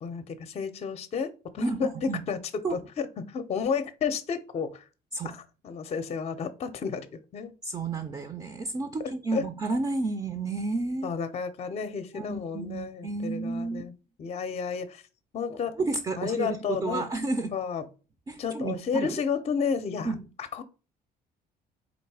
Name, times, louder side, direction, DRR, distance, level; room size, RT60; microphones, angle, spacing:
voice 1, 0.0-4.9 5.2-7.5 9.0-9.5 11.0-13.9 14.2-15.0 15.3-15.8 16.2-17.1 17.5-17.9 18.4-20.1 20.4-20.6, left 6 dB, 40° left, 0.6 m, -32 dB
voice 2, 7.6-11.1 12.1-13.8 15.8-17.5 18.3-19.2 20.0-20.2, right 3 dB, 25° right, 0.5 m, -31 dB
4.0 x 2.6 x 4.7 m
cardioid pair, 110°, 17 cm